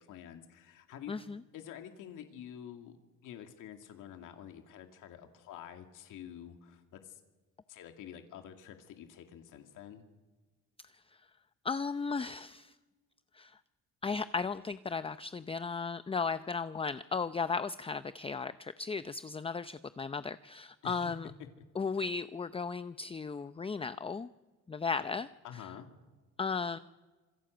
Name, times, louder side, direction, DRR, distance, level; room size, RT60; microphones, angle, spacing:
voice 1, 0.0-1.1 1.5-2.9 3.2-7.2 7.7-10.1 20.8-21.5 25.4-25.9, left 9 dB, 80° left, 5 dB, 2.4 m, -48 dB
voice 2, 1.1-1.4 11.6-12.7 13.3-13.6 14.0-21.3 21.8-24.3 24.7-25.3 26.4-26.8, left 5 dB, 20° left, 13 dB, 0.6 m, -35 dB
26.5 x 18.5 x 8.0 m, 1.3 s
cardioid pair, 100°, 31 cm